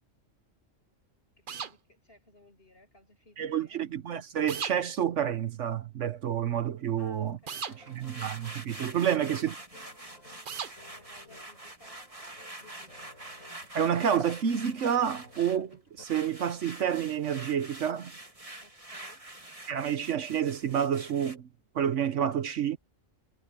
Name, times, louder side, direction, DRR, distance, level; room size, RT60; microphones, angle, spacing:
voice 1, 1.4-3.9 7.0-8.1 9.1-12.2 12.6-13.1 18.6-19.3, left 1 dB, 45° left, 7.6 m, -60 dB
sound 1, 1.5-1.7 4.5-4.8 7.5-7.7 10.5-10.7, right 7 dB, 45° right, 0.9 m, -36 dB
voice 2, 3.4-7.4 7.9-9.5 13.7-18.1 19.7-21.5 21.7-22.8, right 9 dB, 65° right, 1.2 m, -29 dB
sound 2, 7.5-21.4, right 1 dB, 25° right, 2.9 m, -46 dB
sound 3, 7.7-16.0, left 2 dB, 90° left, 8.0 m, -57 dB
omnidirectional pair, 1.4 m